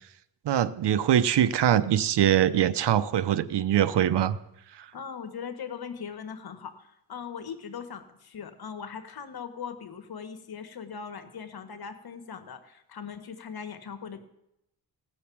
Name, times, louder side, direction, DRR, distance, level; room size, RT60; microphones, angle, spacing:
voice 1, 0.5-4.4, right 10 dB, 70° right, 15 dB, 0.8 m, -23 dB
voice 2, 4.9-14.2, left 6 dB, 55° left, 10 dB, 1.6 m, -40 dB
16.5 x 6.6 x 8.5 m, 0.83 s
cardioid pair, 95°, 43 cm